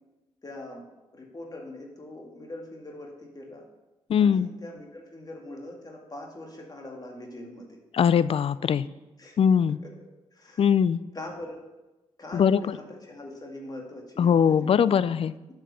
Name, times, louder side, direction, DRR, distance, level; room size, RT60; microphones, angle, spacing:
voice 1, 0.4-0.9 1.1-3.6 4.2-7.8 9.2-9.4 9.8-9.9 10.3-10.6 11.1-11.6 12.2-15.0, left 1 dB, 35° left, 0 dB, 2.1 m, -42 dB
voice 2, 4.1-4.5 7.9-8.9 9.4-9.8 10.6-11.0 12.3-12.8 14.2-15.5, left 7 dB, 55° left, 17 dB, 0.4 m, -21 dB
7.7 x 6.1 x 6.8 m, 1.1 s
cardioid pair, 60°, 12 cm